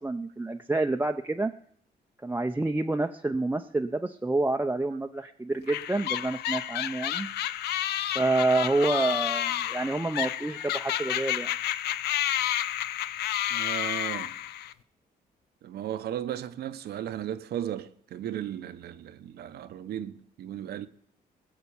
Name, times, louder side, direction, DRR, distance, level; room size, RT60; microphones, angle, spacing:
voice 1, 0.0-1.5 2.2-7.3 8.1-11.5, right 2 dB, 10° right, 0.6 m, -28 dB
sound 1, 5.7-14.7, left 12 dB, 85° left, 0.6 m, -30 dB
voice 2, 13.5-14.3 15.6-20.9, right 11 dB, 80° right, 1.0 m, -35 dB
19.5 x 7.0 x 7.1 m
cardioid pair, 100°, 16 cm